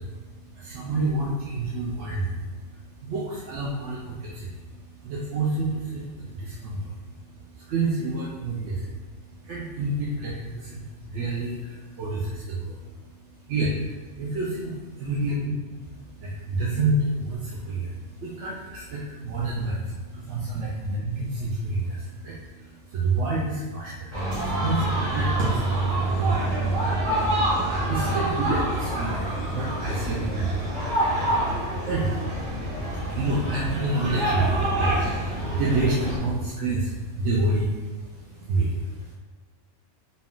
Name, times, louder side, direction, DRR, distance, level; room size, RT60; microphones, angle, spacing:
voice 1, 0.0-26.5 27.8-39.1, right 2 dB, 70° right, -5 dB, 0.9 m, -29 dB
sound 1, 24.1-36.2, right 1 dB, 90° right, 1.8 m, -26 dB
4.0 x 2.3 x 3.6 m, 1.3 s
omnidirectional pair, 1.3 m